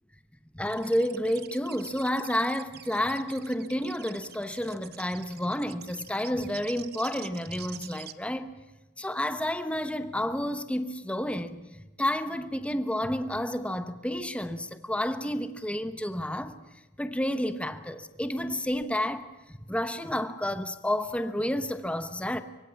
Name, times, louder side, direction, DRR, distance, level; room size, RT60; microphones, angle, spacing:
voice 1, 0.5-8.5 9.0-16.6 17.0-22.4, left 1 dB, 5° left, 1.0 m, -30 dB
sound 1, 0.6-8.1, right 11 dB, 50° right, 1.0 m, -47 dB
25.0 x 23.0 x 8.5 m
head